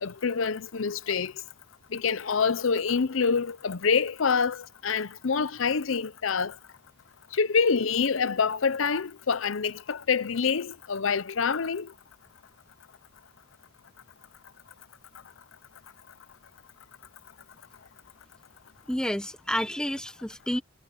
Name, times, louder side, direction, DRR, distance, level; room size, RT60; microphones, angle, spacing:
voice 1, 0.0-1.3 1.9-6.5 7.3-11.9, left 5 dB, 80° left, 0.7 m, -26 dB
voice 2, 18.9-20.6, equal, 5° left, 1.0 m, -30 dB
head